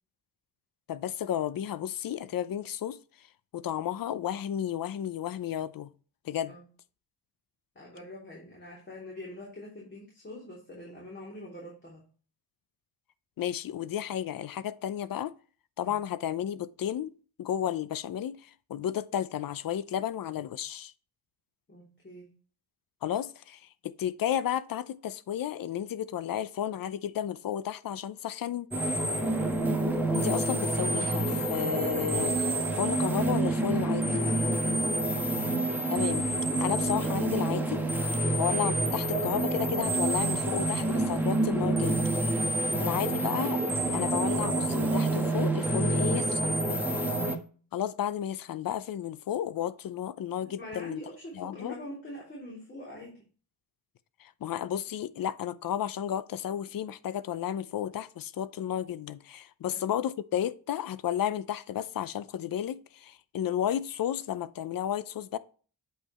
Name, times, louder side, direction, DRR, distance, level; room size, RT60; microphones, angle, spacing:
voice 1, 0.9-3.0 3.5-5.9 6.2-6.5 13.4-15.3 15.8-17.1 17.4-20.9 23.0-28.7 30.1-32.5 32.8-34.2 35.9-36.3 36.6-37.8 38.4-42.3 42.8-43.6 43.9-46.6 47.7-51.0 51.3-51.7 54.2-65.4, left 10 dB, 55° left, 0.6 m, -32 dB
voice 2, 7.7-12.1 15.8-16.0 21.7-22.3 29.0-29.4 34.2-34.9 38.2-38.5 42.6-43.0 46.8-47.1 50.6-53.2 59.6-59.8, left 1 dB, 30° left, 3.0 m, -44 dB
sound 1, 28.7-47.4, right 2 dB, 5° right, 1.3 m, -28 dB
8.1 x 5.5 x 3.0 m
cardioid pair, 110°, 40 cm